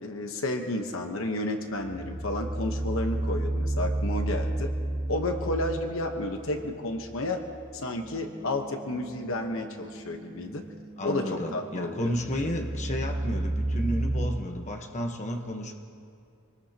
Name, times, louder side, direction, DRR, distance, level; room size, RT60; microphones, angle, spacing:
voice 1, 0.0-4.7 5.1-7.4 7.7-10.6 11.0-12.1, left 1 dB, 65° left, 4 dB, 1.1 m, -31 dB
sound 1, 1.7-7.7 8.0-8.1 12.1-14.3, right 1 dB, 50° right, 4.2 m, -31 dB
sound 2, 7.9-14.1, right 2 dB, 15° left, 3.7 m, -47 dB
voice 2, 11.0-15.7, equal, 35° left, 2 dB, 1.2 m, -32 dB
25.5 x 19.5 x 2.9 m, 2.4 s
head